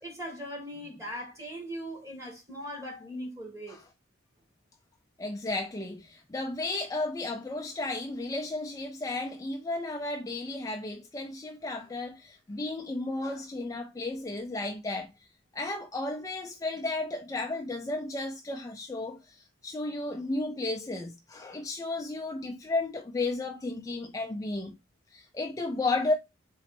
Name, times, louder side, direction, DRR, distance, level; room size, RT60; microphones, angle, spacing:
voice 1, 0.0-3.8, equal, 15° right, 1.6 m, -39 dB
voice 2, 5.2-15.1 15.5-24.8 25.1-26.1, left 2 dB, 15° left, 0.3 m, -33 dB
4.1 x 3.0 x 4.2 m
head